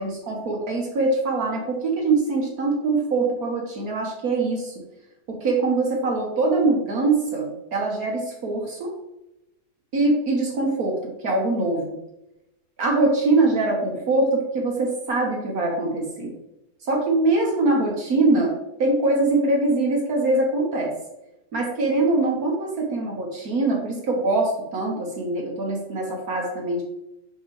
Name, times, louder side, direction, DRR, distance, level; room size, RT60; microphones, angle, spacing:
voice 1, 0.0-4.7 5.3-8.9 9.9-12.0 12.8-16.3 16.8-18.5 18.8-20.9 21.5-26.8, right 2 dB, 65° right, -1 dB, 1.6 m, -23 dB
6.3 x 5.6 x 3.2 m, 0.88 s
omnidirectional pair, 1.7 m